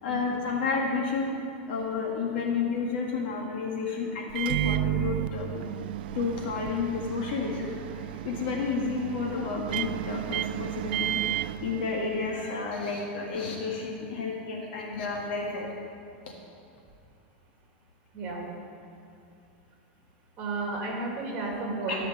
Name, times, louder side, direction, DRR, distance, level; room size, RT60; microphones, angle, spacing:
voice 1, 0.0-1.4 1.7-5.6 6.1-15.7 21.9-22.0, left 4 dB, 65° left, -1 dB, 1.7 m, -31 dB
Microwave oven, 4.3-12.5, right 14 dB, 65° right, 0.3 m, -32 dB
voice 2, 18.1-18.5 20.4-22.1, right 3 dB, 25° right, -1 dB, 2.8 m, -32 dB
14.0 x 5.0 x 8.9 m, 2.5 s
supercardioid pair, 165°, 6 cm